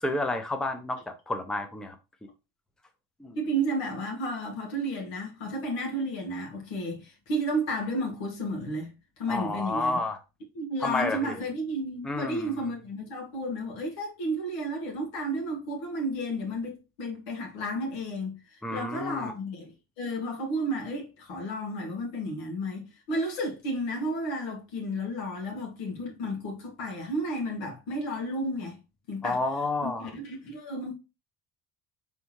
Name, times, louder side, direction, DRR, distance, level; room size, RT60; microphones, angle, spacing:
voice 1, 0.0-1.9 2.2-2.3 3.2-3.4 9.3-10.2 10.8-11.4 12.0-12.5 18.6-19.3 29.2-30.1, left 2 dB, ahead, 0.7 m, -30 dB
voice 2, 3.4-8.9 9.2-10.0 10.6-28.8 29.1-29.4 29.8-30.9, right 1 dB, 75° left, 1.7 m, -32 dB
4.2 x 3.5 x 3.1 m
hypercardioid pair, 65°, 46 cm